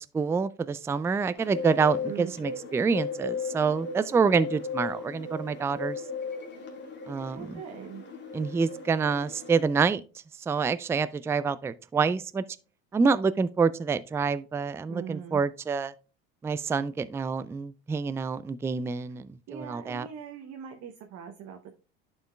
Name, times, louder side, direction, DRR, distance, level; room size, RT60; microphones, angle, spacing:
voice 1, 0.0-6.0 7.1-7.6 8.3-10.0 10.5-12.4 12.9-15.9 16.4-20.1, right 5 dB, 10° right, 0.3 m, -27 dB
Bird, 1.4-9.7, left 4 dB, 35° left, 1.9 m, -37 dB
voice 2, 7.3-8.0 14.9-15.4 19.5-21.7, right 8 dB, 55° right, 0.9 m, -41 dB
11.5 x 4.5 x 2.3 m
hypercardioid pair, 75°, 31 cm